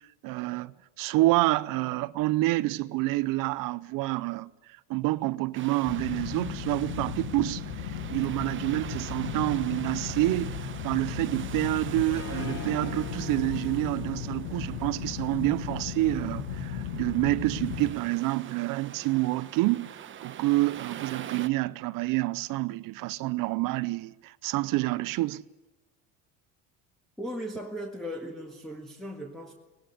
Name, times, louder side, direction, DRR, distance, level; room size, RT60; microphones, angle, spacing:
voice 1, 0.2-0.7 1.0-4.5 4.9-25.4, right 19 dB, 65° right, 0.7 m, -28 dB
sound 1, 5.5-21.5, right 9 dB, 35° right, 1.0 m, -44 dB
sound 2, 5.8-17.9, left 7 dB, 85° left, 2.0 m, -36 dB
Harp, 12.0-17.1, left 7 dB, 45° left, 3.3 m, -46 dB
voice 2, 27.2-29.6, equal, ahead, 1.8 m, -37 dB
19.0 x 17.0 x 9.9 m
cardioid pair, 120°, 36 cm